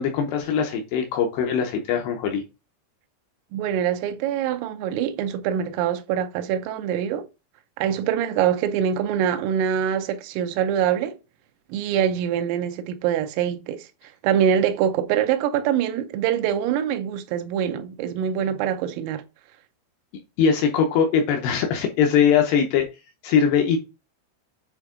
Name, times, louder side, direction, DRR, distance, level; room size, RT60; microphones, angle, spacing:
voice 1, 0.0-2.4 20.4-22.9 23.2-23.8, left 7 dB, 85° left, 2.3 m, -21 dB
voice 2, 3.5-7.3 7.8-11.2 11.7-13.9 14.2-19.2, right 9 dB, 85° right, 3.4 m, -24 dB
9.3 x 3.6 x 3.7 m
omnidirectional pair, 5.8 m